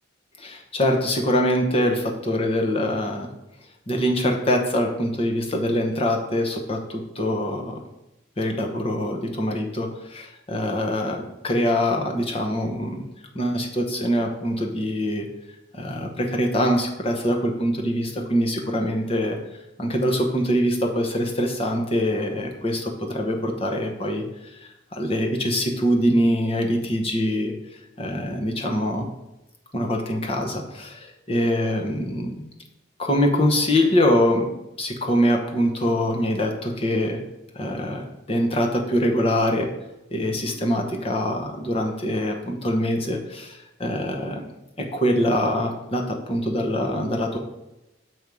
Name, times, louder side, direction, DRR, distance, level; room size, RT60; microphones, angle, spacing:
voice 1, 0.4-3.3 3.9-7.8 8.4-13.0 13.3-15.3 15.7-19.4 19.8-24.2 24.5-27.5 28.0-29.1 29.7-32.3 33.0-34.5 34.8-37.2 37.5-39.7 40.1-44.4 44.8-47.4, equal, 30° left, 2 dB, 0.9 m, -24 dB
6.2 x 4.7 x 5.3 m, 0.94 s
head